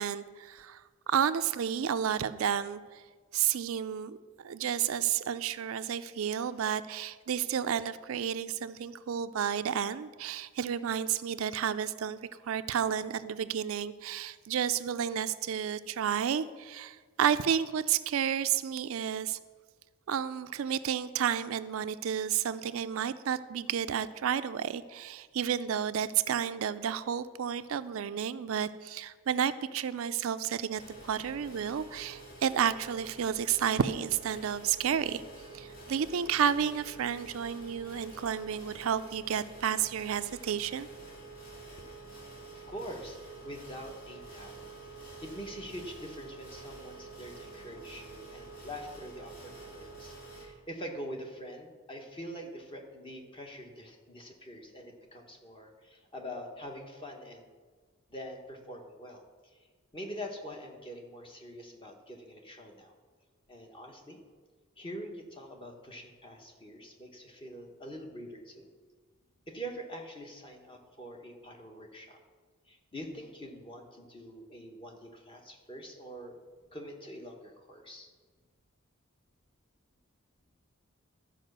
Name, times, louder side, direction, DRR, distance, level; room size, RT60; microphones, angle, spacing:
voice 1, 0.0-3.0 3.3-19.4 20.1-35.2 35.5-40.9, right 8 dB, 75° right, 12 dB, 0.4 m, -31 dB
sound 1, 30.7-50.5, right 3 dB, 45° left, 2.3 m, -48 dB
voice 2, 41.8-57.5 58.1-59.6 59.9-62.9 63.5-64.2 64.8-68.7 69.5-72.2 72.7-76.4 76.7-78.1, equal, 25° left, 2 dB, 1.2 m, -45 dB
12.5 x 5.0 x 6.6 m, 1.5 s
head